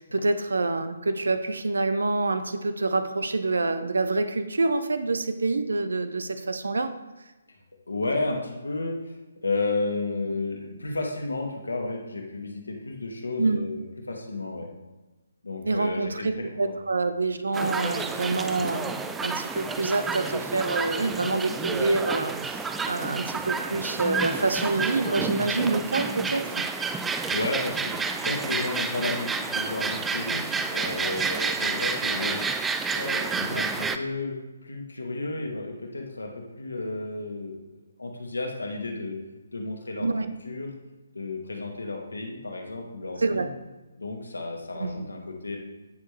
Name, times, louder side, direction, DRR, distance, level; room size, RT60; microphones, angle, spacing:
voice 1, 0.0-6.9 13.4-13.7 15.6-26.6 33.4-33.6 40.0-40.3 43.2-43.5 44.8-45.1, right 3 dB, 65° right, 11 dB, 0.7 m, -27 dB
voice 2, 7.9-14.7 15.4-16.7 27.3-28.0 28.2-32.6 32.9-37.5 38.0-39.2 39.5-40.1 40.4-40.7 41.1-43.5 44.0-45.6, left 2 dB, 70° left, 1 dB, 2.1 m, -32 dB
sound 1, 17.5-34.0, right 4 dB, 10° right, 0.4 m, -30 dB
16.5 x 6.4 x 3.3 m, 1.1 s
figure-of-eight pair, 140°, 0 cm